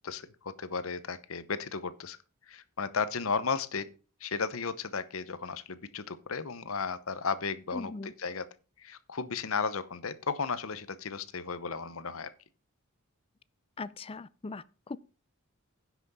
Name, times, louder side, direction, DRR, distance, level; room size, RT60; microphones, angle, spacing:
voice 1, 0.0-2.2 2.5-3.9 4.2-8.5 8.8-12.3, left 5 dB, 70° left, 0.9 m, -34 dB
voice 2, 7.7-8.1 13.8-15.0, left 3 dB, 25° left, 0.5 m, -40 dB
10.5 x 6.1 x 5.5 m
head